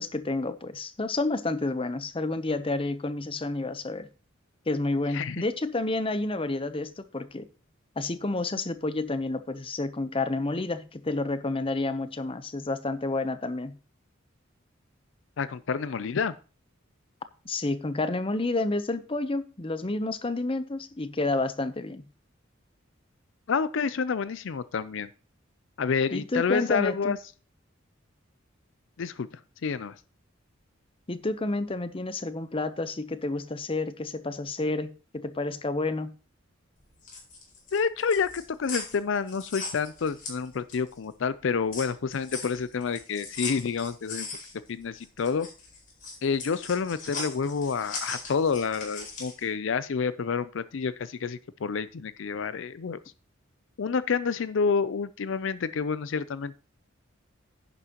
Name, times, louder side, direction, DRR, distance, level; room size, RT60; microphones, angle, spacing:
voice 1, 0.0-4.1 4.7-7.5 8.0-13.7 17.4-22.0 26.1-27.1 31.1-36.1, left 2 dB, 25° left, 12 dB, 0.7 m, -30 dB
voice 2, 15.4-16.3 23.5-25.1 25.8-27.2 29.0-29.3 29.6-30.0 37.7-44.3 44.7-45.5 46.2-53.0 53.8-56.6, left 5 dB, 65° left, 15 dB, 0.5 m, -28 dB
sound 1, 36.8-41.0 41.3-49.4, left 3 dB, 45° left, 4.9 m, -39 dB
10.5 x 9.9 x 2.9 m, 0.35 s
head